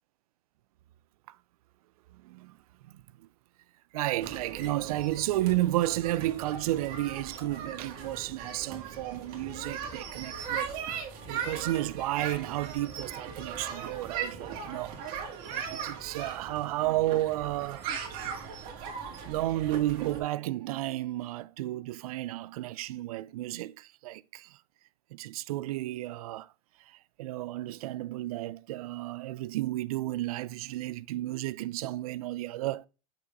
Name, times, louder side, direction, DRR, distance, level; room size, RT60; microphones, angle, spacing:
voice 1, 2.2-2.6 3.9-15.0 15.5-17.9 19.2-24.6 25.1-26.5 26.9-32.9, right 16 dB, 70° right, 0.4 m, -32 dB
sound 1, 4.2-20.2, right 7 dB, 50° right, 1.9 m, -39 dB
6.9 x 6.0 x 2.4 m
hypercardioid pair, 105°, 19 cm